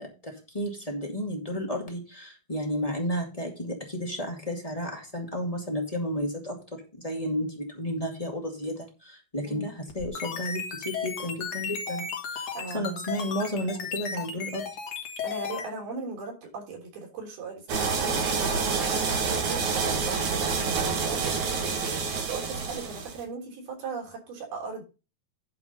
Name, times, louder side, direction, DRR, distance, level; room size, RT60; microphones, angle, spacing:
voice 1, 0.0-12.5 12.7-14.6, equal, 15° left, 0 dB, 1.4 m, -32 dB
sound 1, 9.9-15.7, left 6 dB, 50° left, 2.6 m, -34 dB
voice 2, 12.6-13.0 15.2-21.7 22.3-24.8, right 4 dB, 75° right, 0 dB, 5.3 m, -38 dB
sound 2, 17.7-23.2, right 5 dB, 55° right, 3.0 m, -28 dB
11.0 x 4.8 x 5.5 m, 0.31 s
omnidirectional pair, 4.5 m